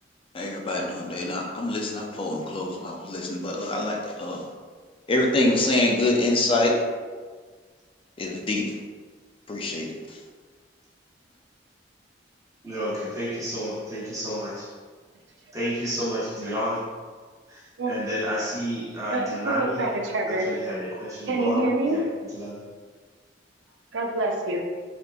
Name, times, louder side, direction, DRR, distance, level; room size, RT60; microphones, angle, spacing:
voice 1, 0.3-4.4 5.1-6.8 8.2-8.7 9.5-10.2, left 2 dB, 30° left, 0 dB, 0.4 m, -25 dB
voice 2, 12.6-14.7 15.5-16.8 17.5-19.8 20.3-22.6, equal, 20° right, -7 dB, 0.9 m, -31 dB
voice 3, 19.1-20.5 21.3-22.0 23.9-24.6, right 2 dB, 75° right, 1 dB, 0.5 m, -26 dB
3.4 x 2.8 x 2.4 m, 1.5 s
head